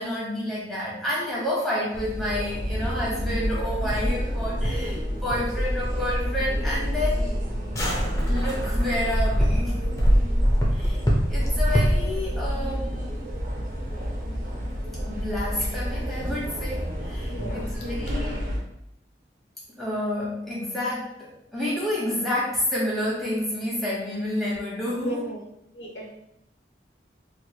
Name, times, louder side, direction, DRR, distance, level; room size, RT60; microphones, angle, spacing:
voice 1, 0.0-7.3 8.3-9.8 10.7-11.0 11.3-13.2 15.1-18.5 19.7-25.3, left 1 dB, ahead, -7 dB, 0.9 m, -29 dB
sound 1, 1.9-18.6, equal, 45° right, 0.5 m, -30 dB
sound 2, 2.7-12.2, equal, 20° left, 0.4 m, -25 dB
voice 2, 17.3-17.7 24.9-25.4 25.7-26.1, right 1 dB, 85° left, -2 dB, 0.8 m, -35 dB
3.0 x 2.8 x 2.2 m, 0.80 s
head